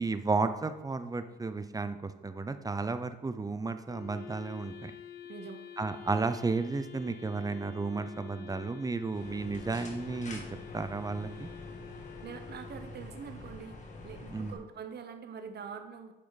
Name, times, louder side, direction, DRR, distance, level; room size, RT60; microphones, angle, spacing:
voice 1, 0.0-4.9 5.8-10.4 10.7-11.5 14.3-14.6, right 3 dB, 20° right, 10 dB, 0.6 m, -33 dB
Wind instrument woodwind instrument, 3.9-13.1, left 8 dB, 55° left, 1.4 m, -48 dB
voice 2, 5.3-5.6 12.2-16.1, right 6 dB, 55° right, 8 dB, 1.0 m, -44 dB
sound 1, 9.1-14.5, left 2 dB, 35° left, 1.7 m, -46 dB
8.5 x 5.6 x 4.1 m, 1.0 s
cardioid pair, 90°, 20 cm